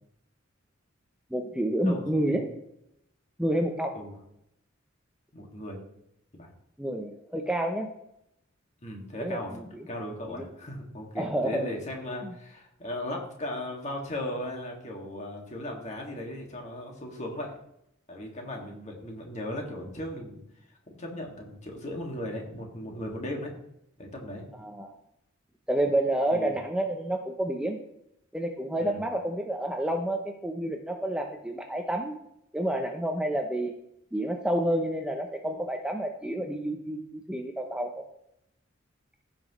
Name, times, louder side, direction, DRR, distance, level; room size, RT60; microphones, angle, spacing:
voice 1, 1.3-2.5 3.4-3.9 6.8-7.9 9.2-9.4 10.3-10.5 11.2-11.7 12.2-12.3 24.6-24.9 25.7-27.8 28.3-32.2 32.5-33.7 34.1-38.0, right 1 dB, 5° right, 3 dB, 0.6 m, -29 dB
voice 2, 1.8-2.4 3.9-4.2 5.3-5.8 6.3-6.5 8.8-17.5 18.1-20.4 20.7-23.6 24.0-24.4 26.3-26.6 28.8-29.0, left 1 dB, 35° left, 0 dB, 2.0 m, -37 dB
15.5 x 5.9 x 3.1 m, 0.78 s
head